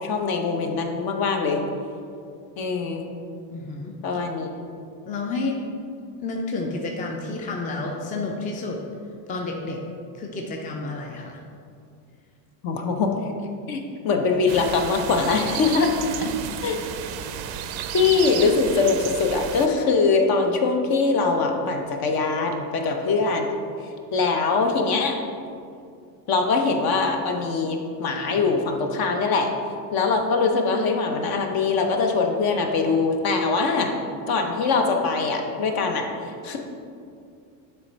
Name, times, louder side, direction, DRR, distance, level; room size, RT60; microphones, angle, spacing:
voice 1, 0.0-1.6 2.6-3.1 4.0-4.5 12.6-13.1 13.7-15.9 16.6-16.8 17.9-23.5 24.1-25.2 26.3-29.5 29.9-33.9 34.3-36.1 36.4-36.6, left 4 dB, 50° left, 4 dB, 0.8 m, -22 dB
voice 2, 3.5-4.0 5.1-5.6 6.2-8.8 9.3-9.8 10.1-11.4 16.2-16.3, left 3 dB, 15° left, 1 dB, 0.5 m, -30 dB
sound 1, 14.5-19.7, right 9 dB, 50° right, 0.5 m, -32 dB
6.8 x 3.3 x 4.5 m, 2.4 s
supercardioid pair, 105°, 48 cm